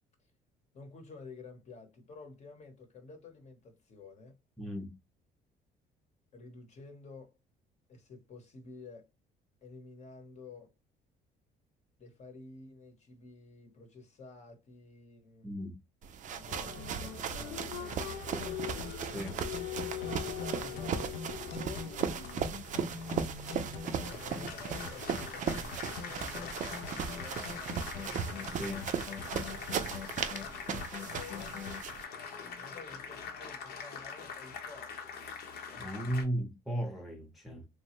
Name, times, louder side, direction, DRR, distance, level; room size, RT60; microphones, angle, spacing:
voice 1, 0.7-4.4 6.3-7.4 7.9-9.1 9.6-10.7 12.0-15.5 16.3-18.6 20.2-22.2 23.7-27.8 31.1-31.6 32.5-35.4, left 4 dB, 40° left, 0.9 m, -51 dB
voice 2, 4.6-5.0 15.4-15.8 19.0-19.4 28.5-28.9 35.7-37.7, right 1 dB, ahead, 0.7 m, -36 dB
sound 1, 16.0-32.0, right 7 dB, 50° right, 0.4 m, -37 dB
Applause, 16.3-36.2, left 7 dB, 70° left, 0.9 m, -43 dB
sound 2, 18.4-31.8, left 5 dB, 85° left, 0.5 m, -43 dB
3.1 x 2.1 x 2.9 m
cardioid pair, 110°, 17 cm